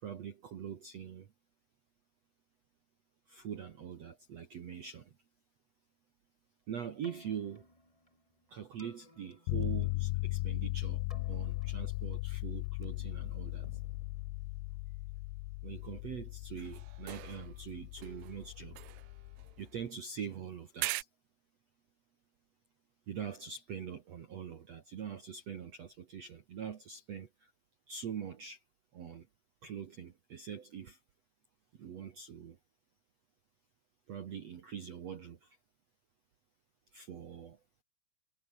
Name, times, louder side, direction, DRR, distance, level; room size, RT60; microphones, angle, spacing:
voice 1, 0.0-1.3 3.3-5.2 6.7-7.7 8.5-13.7 15.6-18.8 19.6-21.1 23.1-27.5 27.9-28.6 28.9-29.3 29.6-31.0 31.7-32.6 34.1-35.6 36.9-37.6, right 8 dB, 65° right, 1.7 m, -43 dB
Keyboard (musical), 6.9-15.0, left 1 dB, 5° left, 4.6 m, -60 dB
sound 1, 9.5-19.6, left 22 dB, 85° left, 2.6 m, -38 dB
sound 2, 16.6-17.7 18.0-20.1 20.8-21.0, right 20 dB, 80° right, 2.4 m, -42 dB
omnidirectional pair, 5.2 m